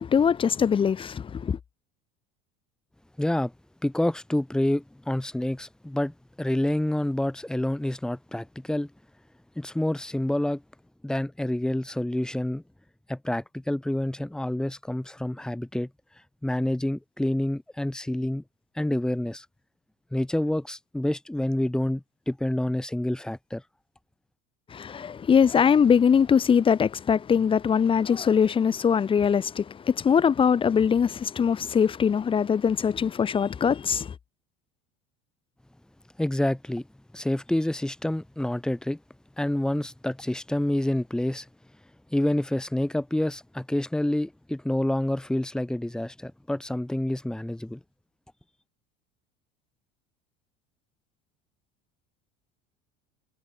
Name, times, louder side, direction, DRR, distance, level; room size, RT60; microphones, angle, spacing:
voice 1, 0.0-1.6 24.7-34.1, left 7 dB, 25° left, 7.5 m, -22 dB
voice 2, 3.2-3.5 3.8-8.9 9.6-10.6 11.0-12.6 13.1-15.9 16.4-18.4 18.7-19.5 20.1-23.6 36.2-36.9 37.1-39.0 39.4-41.5 42.1-47.8, left 1 dB, 5° left, 5.9 m, -28 dB
cardioid pair, 145°, 21 cm